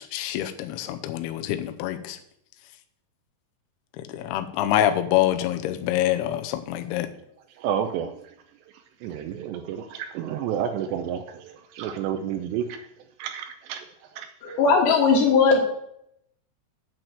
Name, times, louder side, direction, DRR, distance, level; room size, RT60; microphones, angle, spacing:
voice 1, 0.0-2.2 4.0-7.1, left 12 dB, 90° left, 7 dB, 2.3 m, -26 dB
voice 2, 7.6-8.3 9.0-12.8 13.2-13.8 14.2-14.6, right 9 dB, 80° right, 7 dB, 2.6 m, -30 dB
voice 3, 14.4-15.6, left 5 dB, 70° left, -3 dB, 3.3 m, -18 dB
8.7 x 6.0 x 7.7 m, 0.75 s
omnidirectional pair, 5.5 m